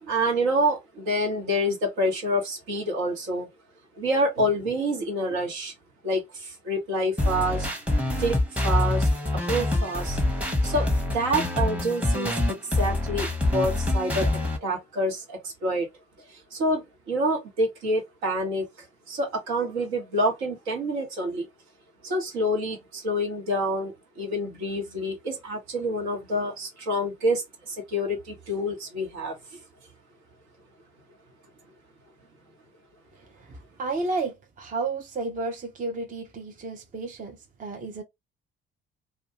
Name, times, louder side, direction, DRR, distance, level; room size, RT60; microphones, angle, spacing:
voice 1, 0.0-3.5 4.0-5.7 6.0-7.7 8.2-9.1 9.5-10.2 10.6-10.9 11.1-14.3 14.6-15.9 16.3-21.5 22.0-29.4, equal, 65° right, 1.2 m, -27 dB
sound 1, 7.2-14.6, left 2 dB, 5° right, 1.0 m, -25 dB
voice 2, 33.4-38.0, right 3 dB, 25° right, 0.7 m, -32 dB
2.5 x 2.3 x 2.9 m
figure-of-eight pair, 50°, 30 cm